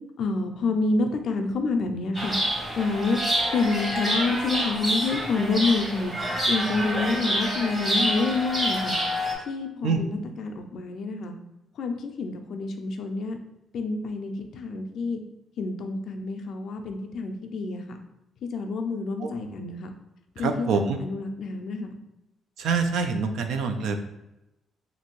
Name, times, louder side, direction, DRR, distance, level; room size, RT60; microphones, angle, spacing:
voice 1, 0.2-2.4 2.8-3.2 3.5-6.1 6.5-8.9 9.5-11.3 11.8-13.4 13.7-15.2 15.6-18.0 18.5-19.9 20.4-21.9, left 3 dB, 65° left, 5 dB, 0.4 m, -28 dB
Chirp tweet, 2.1-9.3, equal, 30° right, 1.0 m, -27 dB
voice 2, 20.4-21.0 22.6-24.1, right 5 dB, 80° right, 6 dB, 0.3 m, -25 dB
2.7 x 2.5 x 2.9 m, 0.93 s
cardioid pair, 90°, 0 cm